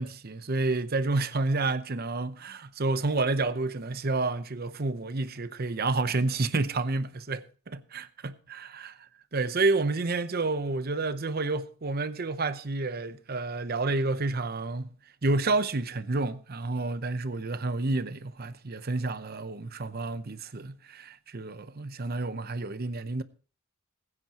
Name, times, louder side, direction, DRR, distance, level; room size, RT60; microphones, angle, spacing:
voice 1, 0.0-14.9 15.2-23.2, right 3 dB, 45° right, 0.8 m, -30 dB
20.5 x 9.7 x 2.9 m
head